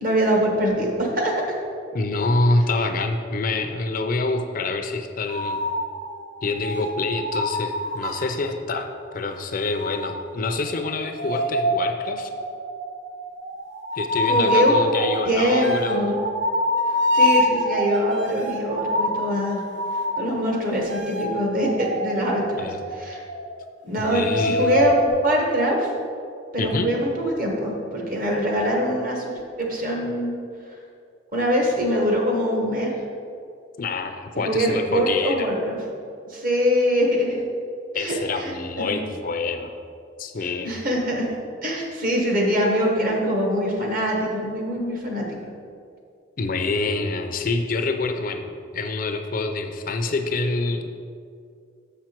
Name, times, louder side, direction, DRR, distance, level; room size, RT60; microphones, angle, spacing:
voice 1, 0.0-1.5 14.3-14.7 15.3-16.2 17.1-19.6 20.2-22.7 22.9-23.2 23.9-25.9 26.5-29.3 29.6-30.3 31.3-32.9 34.4-35.8 36.3-37.4 37.9-38.5 38.8-39.0 40.4-41.3 41.6-45.4, equal, 45° right, -1 dB, 1.3 m, -23 dB
voice 2, 1.9-5.6 6.4-8.9 9.1-12.3 14.0-16.2 22.6-22.8 24.0-24.8 26.6-26.9 33.8-35.5 37.9-39.7 40.2-40.7 46.4-50.9, left 3 dB, 45° left, 6 dB, 0.5 m, -26 dB
sound 1, 5.3-8.4 9.7-23.6 24.2-25.1, left 1 dB, 65° right, 0.8 m, -26 dB
7.0 x 5.9 x 4.5 m, 2.4 s
head